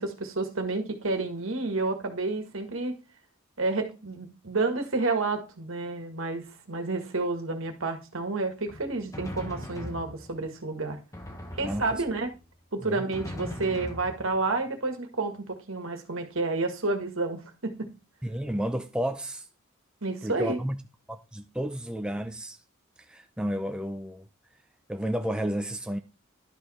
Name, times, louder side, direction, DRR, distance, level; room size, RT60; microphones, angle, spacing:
voice 1, 0.0-2.9 3.6-11.0 11.6-12.3 12.7-17.9 20.0-20.6, right 3 dB, 70° right, 1.7 m, -30 dB
Drum, 8.7-10.6 11.1-12.4 13.1-14.6, left 1 dB, 15° left, 1.3 m, -40 dB
voice 2, 11.6-12.0 12.8-13.1 18.2-19.5 20.2-20.8 21.1-22.6 23.1-24.3 24.9-26.0, equal, 5° right, 0.5 m, -32 dB
11.5 x 5.0 x 4.2 m
head